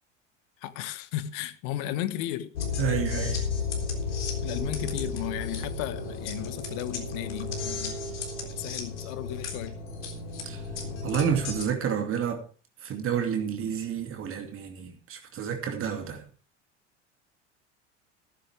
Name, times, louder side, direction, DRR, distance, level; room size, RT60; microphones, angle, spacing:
voice 1, 0.6-2.5 4.4-8.0 8.4-9.8, left 13 dB, 50° left, 1.4 m, -35 dB
sound 1, 2.6-11.7, left 4 dB, 75° left, 3.7 m, -33 dB
voice 2, 2.8-3.4 10.4-10.6 11.0-12.4 12.8-16.2, right 8 dB, 35° right, 2.5 m, -29 dB
14.5 x 13.5 x 3.5 m
figure-of-eight pair, 75°, 36 cm